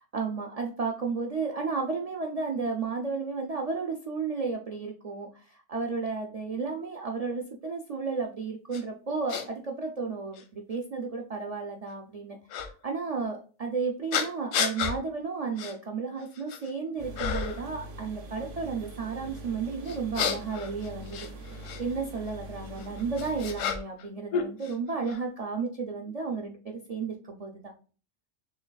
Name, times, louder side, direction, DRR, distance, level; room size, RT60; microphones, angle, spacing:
voice 1, 0.1-12.4 12.8-21.3 21.8-27.7, right 4 dB, 75° right, 1 dB, 0.3 m, -33 dB
sound 1, 8.7-8.8 9.3-9.4 10.3-10.4 12.5-12.7 14.1-15.0 15.6-15.7 16.2-16.7 17.2-17.6 19.9-21.8 22.8-24.1 24.3-25.2, left 7 dB, 85° left, 1.0 m, -31 dB
sound 2, 17.0-23.6, right 1 dB, 55° right, 0.7 m, -43 dB
6.4 x 2.3 x 2.3 m, 0.38 s
omnidirectional pair, 1.3 m